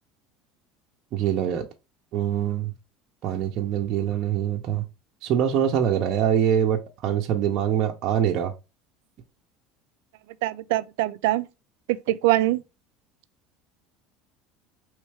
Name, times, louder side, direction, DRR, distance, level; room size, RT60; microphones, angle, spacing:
voice 1, 1.1-1.7 2.1-2.7 3.2-4.8 5.2-8.5, right 9 dB, 45° right, 0.6 m, -24 dB
voice 2, 10.4-11.5 12.1-12.6, right 16 dB, 90° right, 0.3 m, -23 dB
4.3 x 3.1 x 3.3 m
cardioid pair, 160°, 0 cm